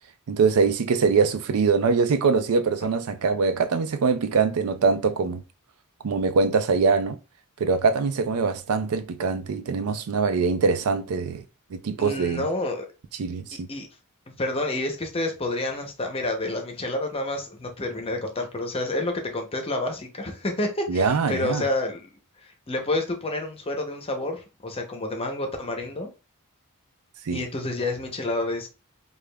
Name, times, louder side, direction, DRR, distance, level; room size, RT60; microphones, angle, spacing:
voice 1, 0.3-5.4 6.0-7.2 7.6-11.4 11.7-12.5 13.2-13.7 20.9-21.6 27.3-27.4, right 5 dB, 75° right, 0.4 m, -23 dB
voice 2, 12.0-12.8 13.5-13.9 14.3-22.0 22.4-26.1 27.3-28.7, left 2 dB, 25° left, 0.7 m, -29 dB
5.0 x 2.3 x 2.3 m
head